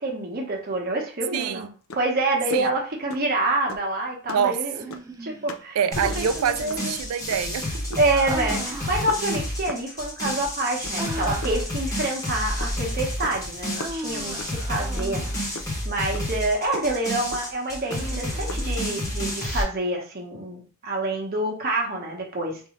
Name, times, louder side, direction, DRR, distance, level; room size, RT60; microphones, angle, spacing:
voice 1, 0.0-1.7 1.9-4.8 5.2-5.8 6.1-7.0 8.0-15.3 15.8-22.6, right 2 dB, 45° right, 0.9 m, -27 dB
voice 2, 1.3-1.7 2.5-2.7 4.3-4.6 5.8-8.0, right 7 dB, 90° right, 0.4 m, -26 dB
sound 1, 1.9-2.1 2.3-2.6 3.1-3.3 3.7-3.9 4.3-4.5 4.9-5.2 5.5-5.7 5.9-6.4 6.7-6.9 7.3-7.6 7.9-8.1 8.4-8.7 9.1-9.2 9.7-9.9 10.3-10.4 10.8-11.2 11.4-12.8 13.2-13.5 13.8-14.6 15.0-15.1 15.4-15.9 16.1-16.2 16.7-16.9 17.3-17.4 17.9-18.2 18.5-18.6, left 2 dB, 65° left, 0.5 m, -37 dB
Human voice, 4.7-5.6 8.1-9.5 11.0-11.8 13.7-15.5 17.8-19.4, right 1 dB, 15° right, 0.3 m, -37 dB
sound 2, 5.9-19.6, left 1 dB, 15° left, 1.1 m, -30 dB
3.6 x 2.7 x 3.0 m
head